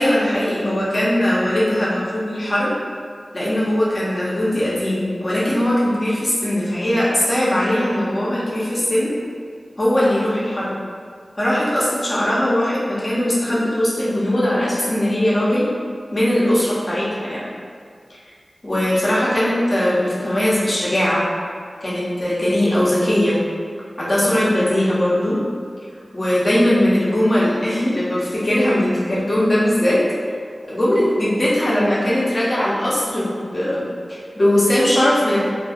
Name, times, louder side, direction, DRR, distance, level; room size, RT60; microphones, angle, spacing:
voice 1, 0.0-2.8 3.3-9.1 9.8-10.7 11.4-15.7 16.1-17.4 18.6-21.2 21.8-23.4 24.0-25.4 26.1-30.0 30.7-35.4, left 1 dB, 45° left, -7 dB, 0.7 m, -19 dB
2.5 x 2.3 x 2.4 m, 2.1 s
wide cardioid pair, 50°, 0 cm